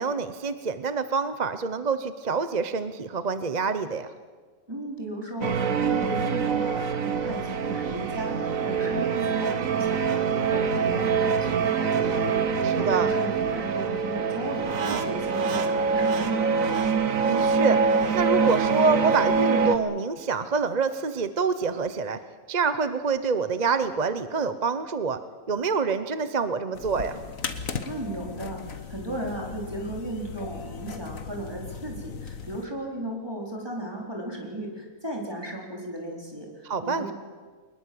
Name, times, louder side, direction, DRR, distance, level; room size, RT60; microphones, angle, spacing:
voice 1, 0.0-4.1 12.6-13.1 14.8-15.0 17.3-17.8 18.1-22.2 22.5-25.2 25.5-27.2 36.6-37.1, right 4 dB, 35° right, 11 dB, 0.8 m, -26 dB
voice 2, 4.7-17.0 27.9-37.1, right 1 dB, 15° right, -1 dB, 4.2 m, -35 dB
sound 1, 5.4-19.8, right 5 dB, 70° right, 1.6 m, -25 dB
sound 2, 26.7-32.6, left 5 dB, 70° left, 1.7 m, -37 dB
23.5 x 20.5 x 7.8 m, 1.5 s
omnidirectional pair, 1.5 m